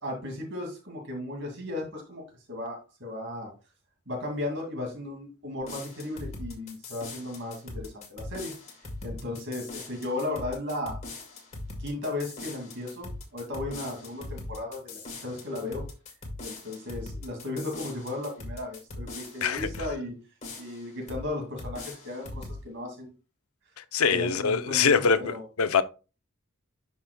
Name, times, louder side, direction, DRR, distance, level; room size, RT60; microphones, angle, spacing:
voice 1, 0.0-3.5 4.1-8.5 9.0-11.0 11.8-15.8 16.4-20.1 20.6-23.1 24.1-25.0 25.3-25.4, left 2 dB, 60° right, 2.3 m, -35 dB
sound 1, 5.6-19.9 20.4-21.3 21.6-22.6, left 2 dB, 30° left, 1.9 m, -41 dB
voice 2, 23.9-25.8, left 6 dB, 80° left, 0.6 m, -24 dB
11.5 x 5.5 x 2.2 m
head